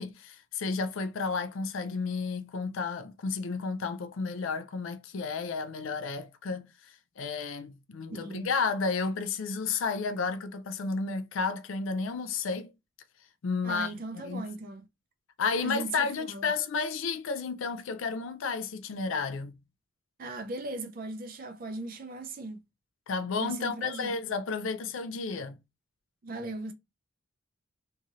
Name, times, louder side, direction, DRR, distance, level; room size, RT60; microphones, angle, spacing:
voice 1, 0.0-12.7 13.4-13.9 14.2-14.4 15.4-19.6 23.1-25.6, left 4 dB, 70° left, 0.4 m, -32 dB
voice 2, 8.1-8.5 13.6-14.8 15.6-16.5 20.2-22.6 23.4-24.1 26.2-26.7, right 2 dB, 45° right, 0.5 m, -38 dB
2.9 x 2.7 x 2.4 m
head